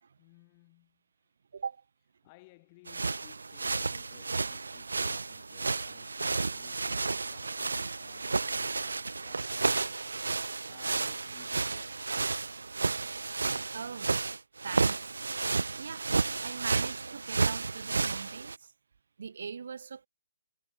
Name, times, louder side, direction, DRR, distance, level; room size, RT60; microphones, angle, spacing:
voice 1, 0.2-1.0 2.2-10.0 10.4-11.9, left 24 dB, 30° left, 7.2 m, -60 dB
voice 2, 1.5-1.8 8.8-9.0 13.7-14.1 14.6-15.2 15.7-16.1 16.4-18.7 19.2-20.1, right 6 dB, 65° right, 1.7 m, -41 dB
sound 1, 2.9-18.6, right 4 dB, 85° right, 0.8 m, -32 dB
hypercardioid pair, 145°, 0 cm